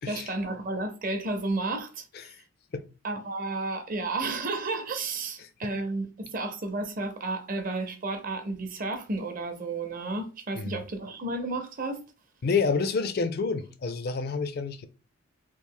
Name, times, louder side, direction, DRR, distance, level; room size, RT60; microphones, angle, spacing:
voice 1, 0.1-2.0 3.0-12.0, right 2 dB, 40° right, 0.6 m, -32 dB
voice 2, 5.4-5.7 10.6-10.8 12.4-14.9, left 4 dB, 45° left, 0.4 m, -29 dB
3.1 x 2.4 x 3.6 m
head